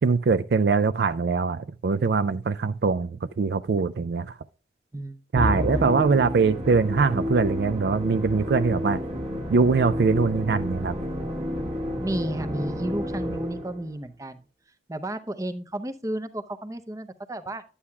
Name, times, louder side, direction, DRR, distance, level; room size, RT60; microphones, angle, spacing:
voice 1, 0.0-4.4 5.3-9.0 9.5-10.9, right 4 dB, 60° right, 0.4 m, -22 dB
Musical instrument, 5.4-13.9, left 1 dB, 35° right, 1.4 m, -30 dB
voice 2, 12.0-14.5 14.9-17.6, right 1 dB, 20° right, 0.6 m, -32 dB
11.5 x 8.5 x 2.3 m
head